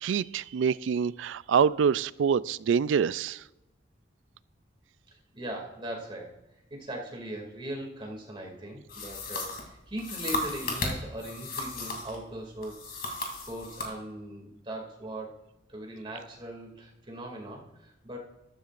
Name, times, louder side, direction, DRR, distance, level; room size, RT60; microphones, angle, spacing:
voice 1, 0.0-3.4, right 7 dB, 90° right, 0.3 m, -26 dB
voice 2, 5.1-6.4 6.7-13.0 13.5-15.4 15.7-18.2, right 1 dB, 30° right, 2.5 m, -39 dB
sound 1, 8.9-12.2 12.6-13.9, left 2 dB, 55° left, 2.8 m, -35 dB
14.0 x 12.5 x 2.5 m
head